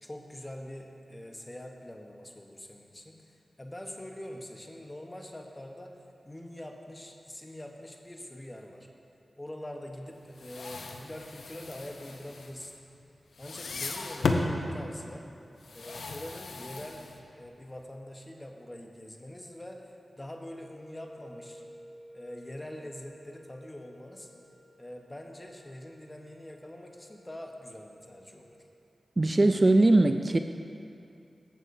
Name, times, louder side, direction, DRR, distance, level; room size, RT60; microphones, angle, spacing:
voice 1, 0.0-3.2 3.6-6.0 6.2-8.9 9.4-12.7 13.4-15.3 15.7-17.0 17.3-21.6 22.1-24.3 24.8-28.5, left 1 dB, 20° left, 2 dB, 1.0 m, -44 dB
sound 1, 10.2-13.0 13.3-14.6 15.6-17.5, left 3 dB, 85° left, 0.6 m, -35 dB
sound 2, 20.4-28.6, equal, 65° right, 1.8 m, -54 dB
voice 2, 29.2-30.4, right 2 dB, 40° right, 7 dB, 0.3 m, -21 dB
14.5 x 7.2 x 2.7 m, 2.6 s
cardioid pair, 50°, 0 cm